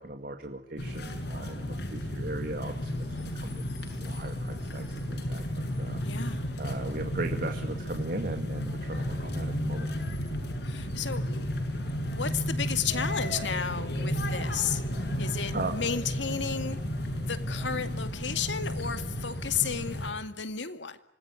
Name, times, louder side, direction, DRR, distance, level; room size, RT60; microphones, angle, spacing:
voice 1, 0.0-3.0 3.3-3.6 4.0-9.9 15.5-15.8, right 2 dB, 50° right, 5 dB, 2.3 m, -38 dB
sound 1, 0.8-20.1, equal, 65° left, 7.0 m, -33 dB
voice 2, 6.0-6.4 10.6-11.2 12.0-14.8 15.2-16.8 17.2-21.0, left 7 dB, 85° left, 10 dB, 2.2 m, -33 dB
26.0 x 20.0 x 9.8 m, 0.80 s
head